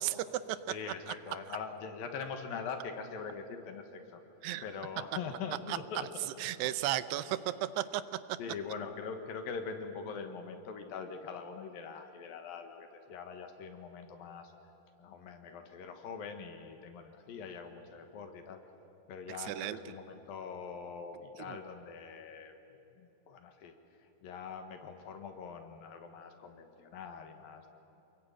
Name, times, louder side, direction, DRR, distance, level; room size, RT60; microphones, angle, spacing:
voice 1, 0.7-4.2 4.6-6.1 6.4-6.5 7.3-7.4 8.4-14.5 15.0-18.6 19.1-22.6 23.0-23.7 24.2-27.7, left 5 dB, 65° left, 6 dB, 3.0 m, -43 dB
voice 2, 6.4-8.0 19.4-19.8 21.5-21.6, right 14 dB, 85° right, 14 dB, 2.9 m, -34 dB
28.5 x 21.5 x 8.9 m, 2.8 s
omnidirectional pair, 4.7 m